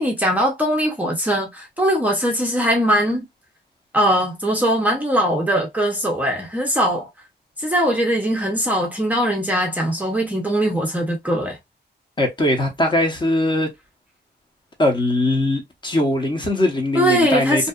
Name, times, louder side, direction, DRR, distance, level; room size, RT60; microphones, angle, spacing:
voice 1, 0.0-3.3 3.9-7.1 7.6-11.6 16.9-17.7, equal, 10° right, 0.6 m, -20 dB
voice 2, 12.2-13.7 14.8-17.7, left 1 dB, 25° left, 0.8 m, -20 dB
2.7 x 2.3 x 2.3 m
wide cardioid pair, 160°, 18 cm